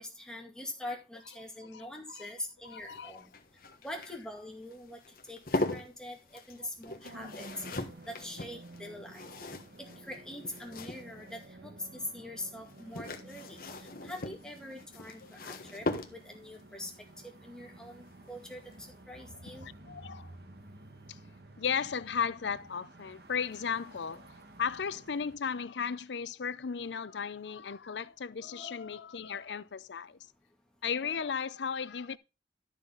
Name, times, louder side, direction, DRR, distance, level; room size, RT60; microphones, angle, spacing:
voice 1, 0.0-3.3 3.8-5.0 5.3-7.6 8.0-9.3 9.8-15.9 16.1-16.9 17.2-19.7 28.4-28.7, left 1 dB, 5° left, 2.4 m, -43 dB
voice 2, 2.6-3.1 3.6-3.8 6.6-6.7 19.6-20.3 21.1-21.2 21.6-24.3 24.6-30.2 30.8-32.2, left 6 dB, 85° left, 0.6 m, -35 dB
sound 1, 2.7-11.5 12.6-16.5 18.2-18.5 18.7-18.8, left 2 dB, 55° left, 1.4 m, -40 dB
sound 2, 7.0-25.4, right 2 dB, 60° right, 1.4 m, -52 dB
12.0 x 6.5 x 3.9 m
head